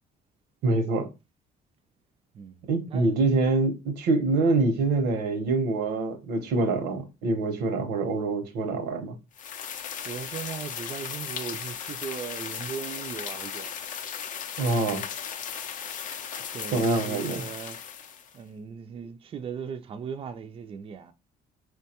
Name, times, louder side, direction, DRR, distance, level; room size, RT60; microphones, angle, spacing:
voice 1, 0.6-1.1 2.7-9.2 14.6-15.0 16.7-17.4, right 3 dB, 85° right, 0.8 m, -25 dB
voice 2, 2.3-3.1 10.1-13.8 16.5-17.8 18.3-21.1, right 7 dB, 35° right, 0.4 m, -38 dB
sound 1, 9.4-18.4, left 8 dB, 50° left, 0.5 m, -36 dB
4.5 x 2.2 x 2.8 m
cardioid pair, 110°, 17 cm